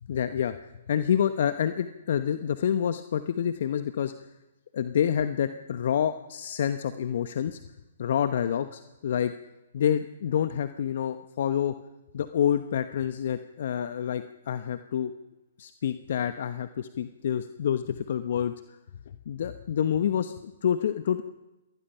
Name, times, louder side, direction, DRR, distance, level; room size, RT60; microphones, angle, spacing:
voice 1, 0.1-0.6 0.9-4.1 4.7-7.6 8.0-9.3 9.7-11.7 12.1-15.1 15.6-18.8 19.3-21.2, left 9 dB, 60° left, 11 dB, 1.0 m, -28 dB
26.5 x 19.5 x 5.7 m, 1.0 s
hypercardioid pair, 130°, 0 cm